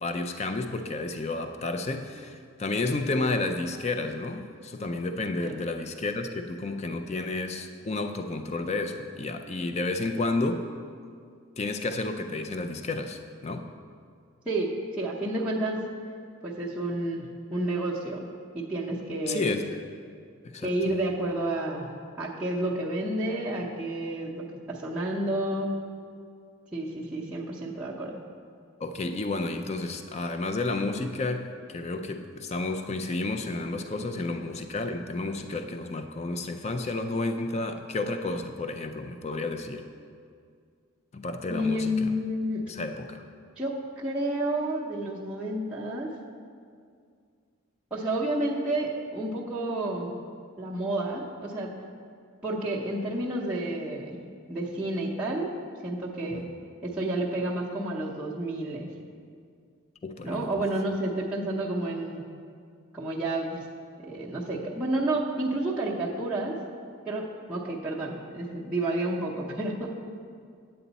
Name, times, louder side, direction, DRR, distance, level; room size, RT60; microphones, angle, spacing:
voice 1, 0.0-10.7 11.6-13.7 19.2-19.8 20.5-20.7 28.8-39.9 41.1-42.1 42.7-43.2 56.3-56.5 60.0-60.6, left 2 dB, 30° left, 7 dB, 0.4 m, -31 dB
voice 2, 14.4-15.8 16.4-18.3 18.5-19.5 20.6-21.9 22.2-25.8 26.7-28.2 41.5-42.6 43.6-46.1 47.9-50.1 50.6-51.7 52.4-54.2 54.5-55.5 55.8-56.4 56.8-58.9 60.2-62.3 62.9-63.6 64.1-66.6 67.1-70.0, right 1 dB, 5° right, -8 dB, 0.7 m, -30 dB
9.1 x 7.9 x 4.0 m, 2.2 s
head